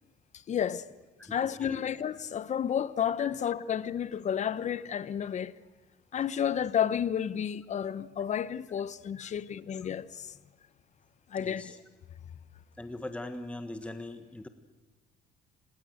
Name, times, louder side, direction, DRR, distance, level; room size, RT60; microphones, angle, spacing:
voice 1, 0.3-0.8 1.2-5.5 6.1-10.4 11.3-11.8, left 8 dB, 45° left, 1.1 m, -31 dB
voice 2, 1.3-1.8 3.2-3.3 9.2-9.3 11.4-11.8 12.8-14.5, left 1 dB, 5° left, 1.4 m, -41 dB
27.0 x 20.5 x 8.0 m
cardioid pair, 110°, 17 cm